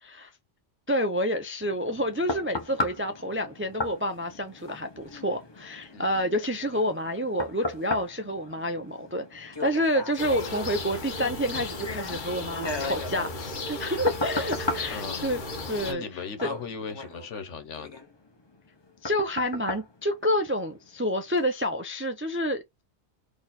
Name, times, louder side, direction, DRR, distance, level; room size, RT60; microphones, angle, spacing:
voice 1, 0.0-0.3 0.9-15.4 15.7-16.1 16.4-16.5 19.0-22.8, equal, 20° right, 0.3 m, -29 dB
sound 1, 1.6-20.9 21.4-21.5, left 2 dB, 25° left, 0.8 m, -37 dB
voice 2, 5.9-6.3 14.9-15.2 15.9-18.0, left 5 dB, 80° left, 1.3 m, -37 dB
sound 2, 10.2-15.9, left 2 dB, 45° left, 1.0 m, -35 dB
4.3 x 2.9 x 4.1 m
omnidirectional pair, 1.2 m